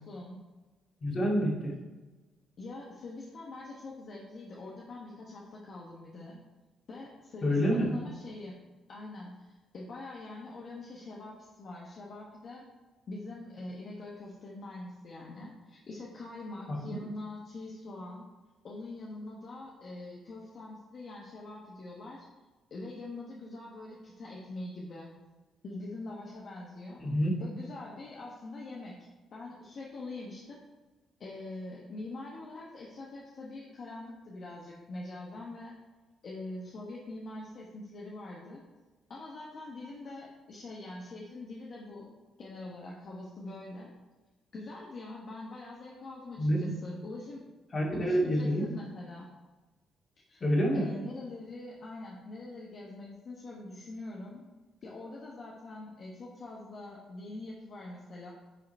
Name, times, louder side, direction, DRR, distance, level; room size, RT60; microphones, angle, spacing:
voice 1, 0.1-0.4 2.6-6.4 6.9-8.6 8.9-12.7 13.1-18.3 18.6-22.3 22.7-25.1 25.6-27.0 27.4-29.0 29.3-30.6 31.2-35.8 36.2-38.6 39.1-42.1 42.4-43.9 44.5-47.4 47.9-49.3 50.3-50.5 50.7-54.4 54.8-58.3, left 2 dB, 55° left, -3 dB, 1.2 m, -44 dB
voice 2, 1.0-1.7 7.4-8.0 16.7-17.0 27.0-27.4 46.4-46.7 47.7-48.6 50.4-50.9, equal, 40° left, -3 dB, 2.3 m, -27 dB
9.6 x 3.8 x 4.4 m, 1.2 s
cardioid pair, 90°, 0 cm